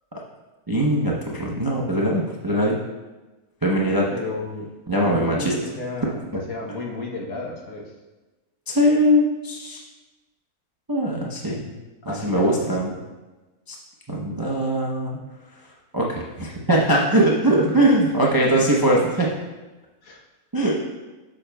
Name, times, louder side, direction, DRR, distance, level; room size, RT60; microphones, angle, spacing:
voice 1, 0.7-2.8 3.6-4.1 4.9-5.5 8.7-9.8 10.9-11.7 12.0-12.9 13.7-13.8 14.1-15.2 15.9-19.3 20.5-20.8, right 1 dB, 25° right, -3 dB, 0.5 m, -21 dB
voice 2, 4.1-4.7 5.0-6.2 6.5-7.9 12.1-12.7 12.9-13.0 17.5-17.8 18.4-18.6 20.0-20.2, left 2 dB, 70° left, 0 dB, 1.5 m, -32 dB
8.9 x 7.0 x 2.3 m, 1.2 s
omnidirectional pair, 1.6 m